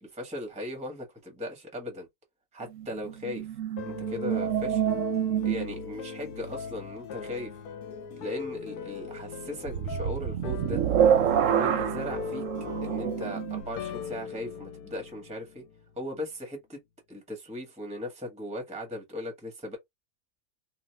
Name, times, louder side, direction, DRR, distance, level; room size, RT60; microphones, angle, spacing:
voice 1, 0.0-2.1 2.5-3.5 3.9-4.8 5.4-7.5 8.2-12.5 12.8-15.6 16.0-16.8 17.1-19.8, left 1 dB, 5° right, 0.8 m, -38 dB
sound 1, 2.6-6.1 9.7-13.6, right 9 dB, 65° right, 0.8 m, -27 dB
sound 2, 3.8-15.9, left 6 dB, 80° left, 1.1 m, -39 dB
2.7 x 2.4 x 3.1 m
omnidirectional pair, 1.6 m